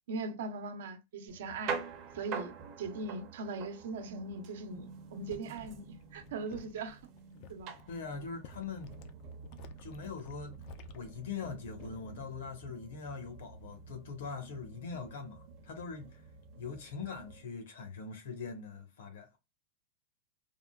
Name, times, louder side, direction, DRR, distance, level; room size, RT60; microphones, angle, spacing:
voice 1, 0.1-1.8 2.1-2.5 2.8-7.0 7.5-7.7, right 3 dB, 70° right, 0.7 m, -40 dB
sound 1, 1.3-17.4, right 6 dB, 30° right, 0.7 m, -47 dB
sound 2, 5.0-12.2 12.5-12.9, left 5 dB, 40° left, 0.4 m, -54 dB
voice 2, 7.9-9.0 9.8-10.5 10.9-16.2 16.6-19.4, left 5 dB, 75° left, 1.1 m, -42 dB
3.6 x 2.2 x 2.3 m
supercardioid pair, 170°, 0 cm